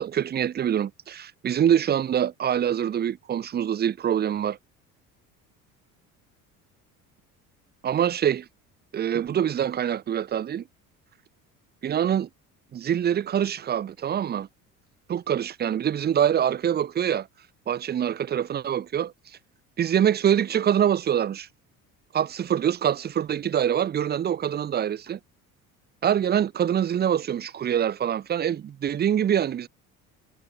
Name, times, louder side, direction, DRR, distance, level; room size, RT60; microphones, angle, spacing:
voice 1, 0.0-4.6 7.8-8.5 8.9-10.6 11.8-12.3 12.7-14.5 15.1-17.3 17.7-19.1 19.8-21.5 22.1-25.2 26.0-29.7, right 9 dB, 20° right, 0.6 m, -24 dB
figure-of-eight pair, 55°, 45 cm